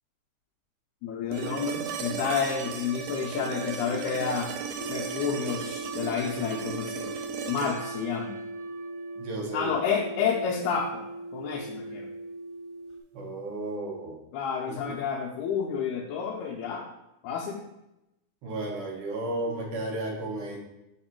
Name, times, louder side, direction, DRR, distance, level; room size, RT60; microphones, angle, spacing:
voice 1, 1.0-4.5 4.9-7.0 7.5-8.3 9.5-11.0 11.3-12.1 14.3-16.9 17.2-17.6, left 6 dB, 80° left, 0 dB, 2.1 m, -30 dB
sound 1, 1.3-9.4 11.5-11.6, right 7 dB, 90° right, 2.2 m, -36 dB
sound 2, 4.8-13.0, right 1 dB, 20° left, 0.9 m, -39 dB
voice 2, 9.2-9.7 13.1-14.2 14.7-14.9 18.4-20.6, right 2 dB, 60° right, -1 dB, 1.7 m, -33 dB
6.5 x 4.7 x 4.5 m, 0.90 s
omnidirectional pair, 3.6 m